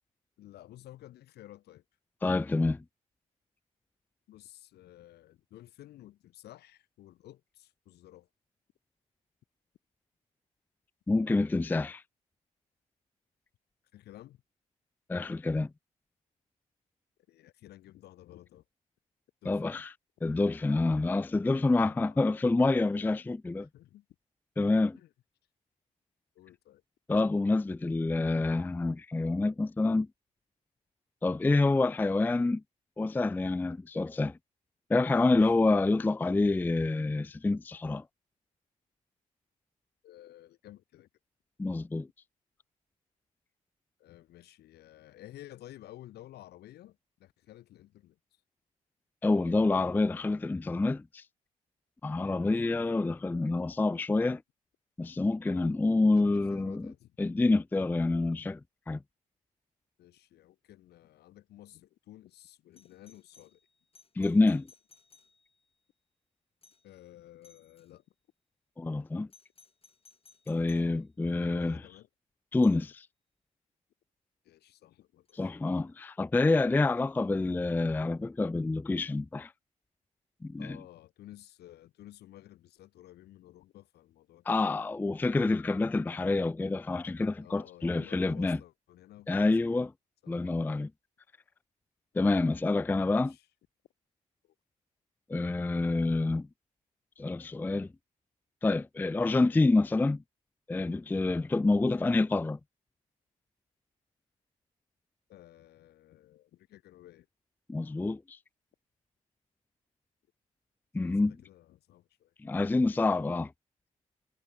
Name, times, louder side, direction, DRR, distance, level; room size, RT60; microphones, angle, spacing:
voice 1, 0.4-1.8 4.3-8.3 13.9-14.4 17.3-18.6 19.4-19.8 21.8-22.3 23.6-24.1 25.0-25.1 26.4-26.8 35.4-35.5 40.0-41.1 44.0-48.4 52.2-52.5 56.0-57.3 60.0-63.6 66.8-68.0 70.7-71.0 71.3-72.1 74.4-75.3 80.6-84.6 87.4-89.5 90.2-90.4 93.1-93.5 94.4-94.5 105.3-107.3 111.0-112.6, left 14 dB, 65° left, 1.9 m, -53 dB
voice 2, 2.2-2.8 11.1-12.0 15.1-15.7 19.5-19.9 20.2-23.7 24.6-25.0 27.1-30.1 31.2-32.6 33.0-34.4 34.9-38.0 41.6-42.1 49.2-51.2 52.0-54.4 55.0-56.9 57.2-58.6 58.9-59.0 64.2-64.7 68.8-69.3 70.5-71.8 72.5-73.1 75.3-79.5 80.4-80.8 84.5-88.6 89.3-89.9 90.3-90.9 92.1-93.4 95.3-96.5 97.2-97.9 98.6-100.2 100.7-102.6 107.7-108.4 110.9-111.3 112.4-113.5, left 3 dB, 10° left, 0.4 m, -27 dB
Doorbell, 62.7-65.7 66.6-67.0 67.4-67.9 69.3-71.0 72.6-72.9 75.3-75.4, left 4 dB, 30° left, 4.0 m, -62 dB
hypercardioid pair, 50°, 18 cm